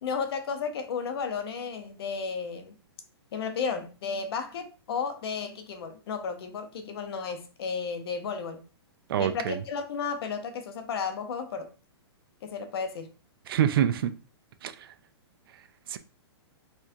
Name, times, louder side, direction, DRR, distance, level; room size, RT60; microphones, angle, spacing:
voice 1, 0.0-2.8 3.3-8.6 9.2-11.7 12.4-13.1, left 5 dB, 60° left, 0.7 m, -33 dB
voice 2, 9.1-9.6 13.5-14.1 14.6-14.7 15.9-16.0, right 10 dB, 55° right, 0.4 m, -25 dB
4.3 x 2.3 x 2.7 m
hypercardioid pair, 155°, 14 cm